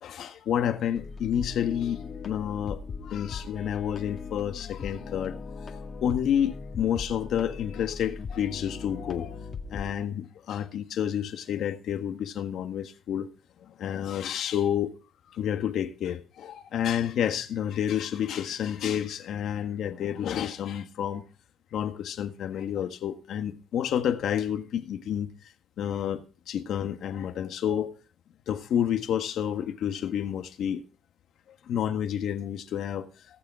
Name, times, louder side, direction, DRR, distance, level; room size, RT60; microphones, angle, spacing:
voice 1, 0.0-5.7 6.0-9.4 9.7-13.3 13.8-14.9 15.3-21.2 21.7-25.3 25.8-27.9 28.5-30.8 31.7-33.1, left 9 dB, 75° left, 1.6 m, -29 dB
sound 1, 0.9-9.9, left 5 dB, 50° left, 1.9 m, -39 dB
18.5 x 6.9 x 4.9 m
cardioid pair, 90°, 0 cm